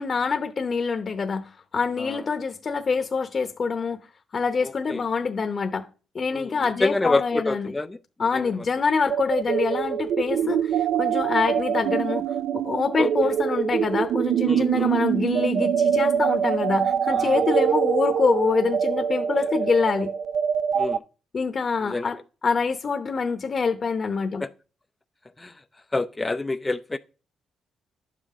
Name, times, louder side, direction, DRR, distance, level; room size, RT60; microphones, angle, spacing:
voice 1, 0.0-4.0 4.3-5.9 6.1-7.7 8.2-12.2 12.5-20.1 21.3-22.2 22.4-24.4, left 5 dB, 40° left, 0.9 m, -25 dB
voice 2, 4.6-5.0 6.3-8.0 8.3-8.6 10.4-10.5 13.0-13.1 14.4-14.9 17.1-17.5 20.7-21.0 21.8-22.1 24.4-24.5 25.4-25.6 25.9-27.0, left 2 dB, 15° left, 0.4 m, -28 dB
sound 1, 9.1-21.0, right 8 dB, 70° right, 0.4 m, -24 dB
11.5 x 7.6 x 3.7 m
cardioid pair, 90°, 0 cm